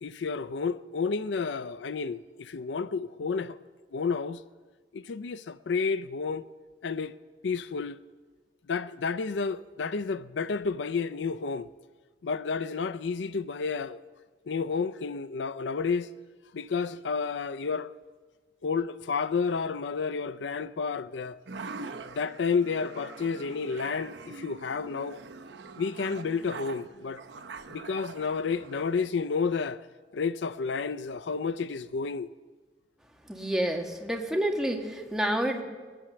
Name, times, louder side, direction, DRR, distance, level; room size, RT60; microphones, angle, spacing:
voice 1, 0.0-3.6 3.9-4.4 4.9-6.5 6.8-7.1 7.4-8.0 8.7-11.7 12.2-14.0 14.5-16.1 16.5-17.9 18.6-21.4 22.2-25.2 25.8-27.2 27.7-29.8 30.1-32.3, left 5 dB, 75° left, 0.5 m, -31 dB
sound 1, 21.5-29.1, right 4 dB, 70° right, 0.8 m, -44 dB
voice 2, 33.3-35.6, right 1 dB, 5° right, 1.5 m, -29 dB
22.0 x 9.2 x 6.8 m
head